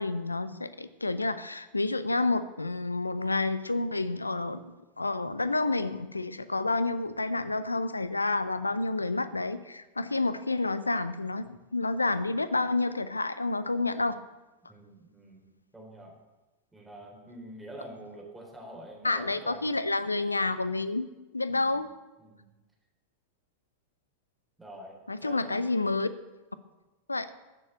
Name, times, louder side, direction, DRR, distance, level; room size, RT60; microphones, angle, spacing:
voice 1, 0.0-4.7 5.0-14.2 19.0-21.1 21.3-21.9 25.1-26.1 27.1-27.3, left 3 dB, 80° left, 14 dB, 0.7 m, -29 dB
voice 2, 14.7-16.2 16.7-19.8 21.5-21.8 22.2-22.5 24.6-25.6, right 1 dB, 5° right, -1 dB, 3.6 m, -47 dB
14.5 x 7.0 x 7.9 m, 1.1 s
figure-of-eight pair, 90°, 0 cm